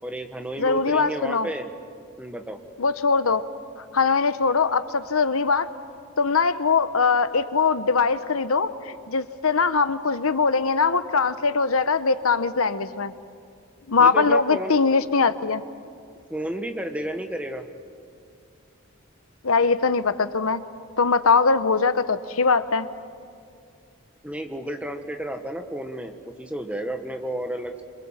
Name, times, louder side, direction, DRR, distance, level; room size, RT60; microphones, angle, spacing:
voice 1, 0.0-1.7 2.2-2.6 14.0-14.8 16.3-17.6 24.2-27.8, right 1 dB, 5° right, 5 dB, 1.4 m, -32 dB
voice 2, 0.6-1.5 2.8-3.4 3.9-5.7 6.2-13.1 13.9-15.6 19.4-20.6 21.0-22.9, left 4 dB, 85° left, 12 dB, 1.1 m, -21 dB
27.0 x 26.0 x 7.5 m, 2.3 s
head